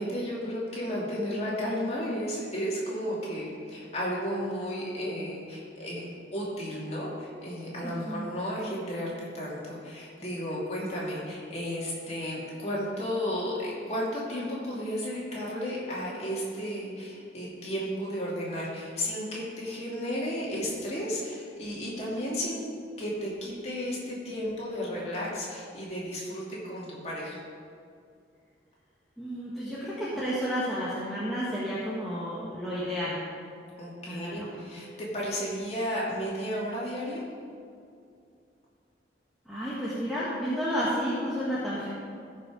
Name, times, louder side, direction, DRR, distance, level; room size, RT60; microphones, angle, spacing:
voice 1, 0.0-22.6 23.0-27.4 33.8-37.2, equal, 35° left, -6 dB, 2.6 m, -33 dB
voice 2, 7.8-8.2 29.2-33.2 34.1-34.5 39.5-41.9, equal, ahead, -9 dB, 1.4 m, -31 dB
14.5 x 5.4 x 5.1 m, 2.4 s
head